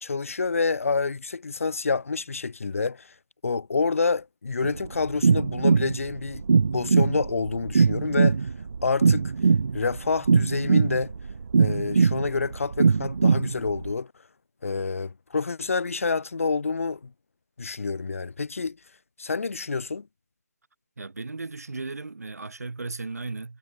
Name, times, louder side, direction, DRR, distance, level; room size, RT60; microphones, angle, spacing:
voice 1, 0.0-3.1 3.4-6.4 6.7-8.4 8.8-9.3 9.7-11.1 11.6-14.1 14.6-17.1 17.6-18.8 19.2-20.1, left 4 dB, 50° left, 1.4 m, -28 dB
sound 1, 4.6-13.9, right 5 dB, 45° right, 1.1 m, -22 dB
voice 2, 21.0-23.6, right 3 dB, 60° right, 4.8 m, -36 dB
figure-of-eight pair, 165°, 9 cm